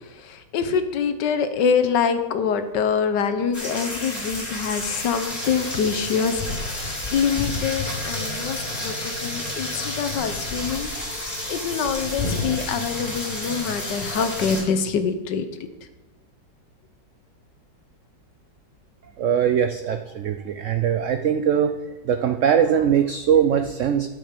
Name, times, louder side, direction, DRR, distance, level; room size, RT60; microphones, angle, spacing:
voice 1, 0.2-15.5, left 6 dB, 75° left, 9 dB, 1.5 m, -25 dB
sound 1, 3.5-14.6, left 2 dB, 20° left, 3.2 m, -30 dB
voice 2, 19.2-21.7 22.0-24.2, right 8 dB, 90° right, 8 dB, 0.6 m, -21 dB
12.0 x 7.0 x 5.1 m, 1.1 s
omnidirectional pair, 1.9 m